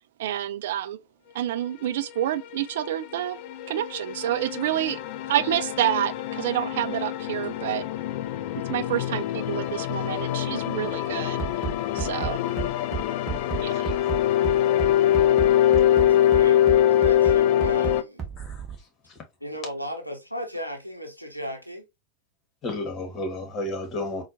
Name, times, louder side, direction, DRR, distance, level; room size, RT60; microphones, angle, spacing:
voice 1, 0.2-1.0 1.3-3.4 3.7-5.0 5.3-7.8 8.7-11.4 12.0-12.4 13.6-13.8, right 12 dB, 55° right, 0.3 m, -28 dB
sound 1, 1.9-18.0, left 11 dB, 45° left, 0.4 m, -24 dB
voice 2, 6.3-6.6 10.1-10.4 13.5-13.7 15.9-18.2 19.4-21.9, equal, 90° left, 0.7 m, -36 dB
Bass drum, 11.4-18.8, right 7 dB, 25° right, 0.9 m, -32 dB
voice 3, 22.6-24.2, left 1 dB, 30° left, 1.3 m, -32 dB
4.2 x 2.3 x 2.6 m
figure-of-eight pair, 90°, 0 cm